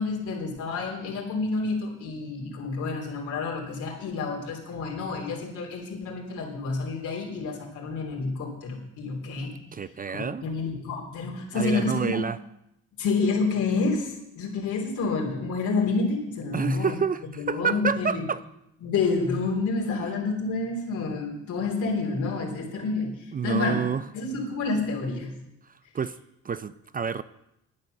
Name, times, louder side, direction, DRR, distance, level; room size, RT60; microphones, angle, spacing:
voice 1, 0.0-9.5 10.1-12.2 13.0-17.0 17.4-18.2 18.8-23.1 23.4-23.8 24.1-25.3, left 4 dB, 75° left, -3 dB, 3.4 m, -29 dB
voice 2, 9.7-10.5 11.5-12.4 16.5-18.4 20.0-20.1 23.3-24.1 25.9-26.2 26.4-27.2, right 6 dB, 30° right, 15 dB, 0.4 m, -28 dB
10.5 x 8.9 x 6.5 m, 0.84 s
cardioid pair, 90°, 30 cm